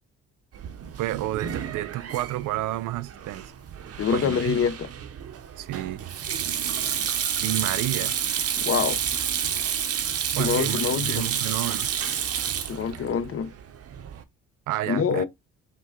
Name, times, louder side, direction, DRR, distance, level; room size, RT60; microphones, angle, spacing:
Sink (filling or washing), 0.5-14.2, right 8 dB, 50° right, 0.8 m, -30 dB
voice 1, 1.0-3.5 4.1-4.6 5.6-6.0 7.4-8.2 10.3-11.9 14.7-15.2, right 15 dB, 85° right, 0.5 m, -30 dB
voice 2, 4.0-4.9 8.6-9.0 10.4-11.3 12.7-13.5 14.9-15.2, left 7 dB, 45° left, 0.8 m, -25 dB
5.7 x 2.3 x 3.6 m
cardioid pair, 90°, 30 cm